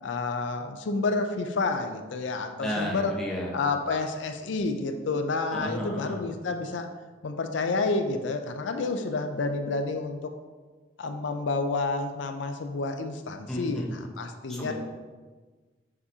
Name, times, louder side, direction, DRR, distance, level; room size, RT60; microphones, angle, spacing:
voice 1, 0.0-3.1 3.5-6.9 7.2-10.3 11.0-14.7, left 3 dB, 75° left, 6 dB, 0.5 m, -29 dB
voice 2, 2.6-3.6 5.5-6.2 13.5-13.9 14.5-14.7, equal, 5° left, -4 dB, 0.9 m, -32 dB
7.1 x 4.9 x 2.8 m, 1.4 s
head